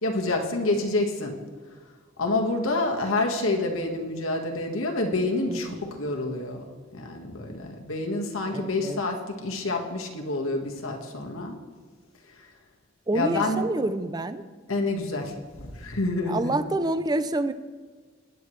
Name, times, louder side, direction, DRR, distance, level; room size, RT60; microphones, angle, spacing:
voice 1, 0.0-1.4 2.2-6.7 6.9-11.6 12.3-12.5 13.1-13.6 14.7-16.4, left 2 dB, 85° left, 2 dB, 1.6 m, -28 dB
voice 2, 5.5-5.9 8.5-9.0 13.1-14.4 16.3-17.5, right 2 dB, 20° right, 11 dB, 0.5 m, -27 dB
20.5 x 9.3 x 3.2 m, 1.5 s
head